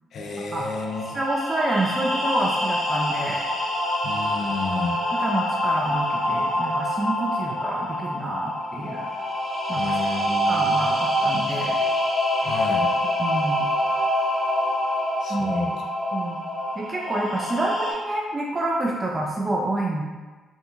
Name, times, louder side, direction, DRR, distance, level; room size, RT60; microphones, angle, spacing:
voice 1, 0.1-1.1 4.0-5.0 9.8-10.9 12.4-12.9 15.2-15.9, left 3 dB, 65° left, 2 dB, 0.3 m, -31 dB
sound 1, 0.6-17.9, left 1 dB, 30° left, 0.7 m, -26 dB
voice 2, 1.1-3.4 5.1-9.1 9.7-11.8 13.2-13.7 15.3-15.6 16.1-16.4 16.8-20.0, right 2 dB, 30° right, -2 dB, 0.4 m, -28 dB
2.6 x 2.5 x 2.3 m, 1.3 s
hypercardioid pair, 50°, 0 cm